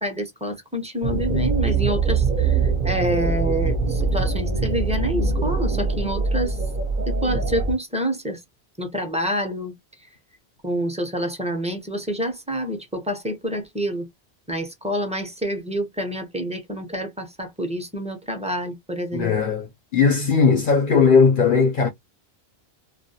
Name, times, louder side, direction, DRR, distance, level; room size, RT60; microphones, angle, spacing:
voice 1, 0.0-6.6 7.1-8.4 8.8-9.7 10.6-14.1 14.5-19.3, equal, 10° right, 0.5 m, -27 dB
sound 1, 1.0-7.7, right 4 dB, 50° right, 0.7 m, -23 dB
voice 2, 19.1-21.9, left 5 dB, 60° left, 0.7 m, -18 dB
2.3 x 2.1 x 2.6 m
omnidirectional pair, 1.1 m